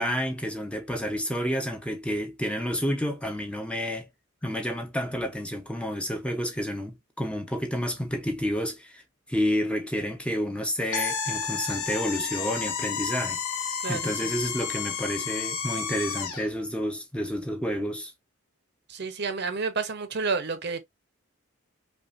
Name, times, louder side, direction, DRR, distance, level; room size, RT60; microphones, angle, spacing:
voice 1, 0.0-4.1 4.4-9.0 9.3-18.1, equal, 5° left, 0.6 m, -30 dB
sound 1, 10.9-16.5, left 6 dB, 80° left, 1.1 m, -31 dB
voice 2, 13.8-14.3 18.9-20.8, right 4 dB, 50° right, 0.7 m, -30 dB
5.2 x 2.4 x 2.4 m
head